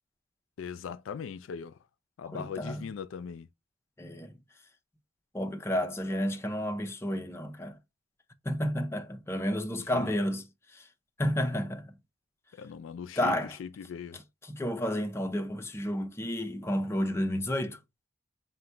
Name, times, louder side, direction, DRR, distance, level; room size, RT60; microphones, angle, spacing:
voice 1, 0.6-1.8 2.2-3.5 9.9-10.1 12.6-14.2, left 6 dB, 75° left, 0.4 m, -40 dB
voice 2, 2.3-2.9 4.0-4.4 5.3-7.8 8.5-10.4 10.7-10.8 11.2-12.0 13.2-13.6 14.4-17.8, equal, 15° left, 0.5 m, -31 dB
3.9 x 2.1 x 4.4 m
head